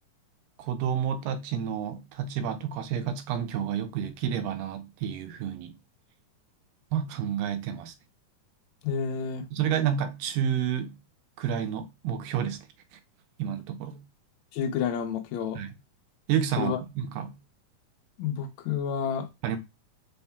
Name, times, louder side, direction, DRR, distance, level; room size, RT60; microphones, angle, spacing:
voice 1, 0.6-5.8 6.9-7.9 9.5-10.9 11.4-12.6 12.9-13.0 13.4-14.0 15.6-15.7 16.3-17.4 19.4-19.6, right 9 dB, 90° right, 2.3 m, -30 dB
voice 2, 8.8-9.4 14.5-15.6 16.6-16.8 18.2-19.3, left 7 dB, 85° left, 1.6 m, -29 dB
5.6 x 3.6 x 2.2 m
omnidirectional pair, 3.9 m